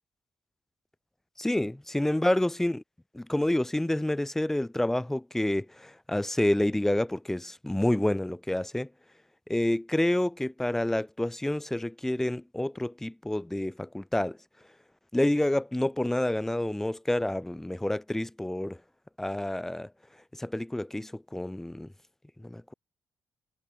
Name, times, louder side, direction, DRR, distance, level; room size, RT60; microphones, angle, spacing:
voice 1, 1.4-2.8 3.1-8.9 9.5-14.4 15.1-18.8 19.2-19.9 20.3-21.9 22.4-22.7, left 1 dB, 5° left, 0.4 m, -28 dB
cardioid pair, 85°, 6 cm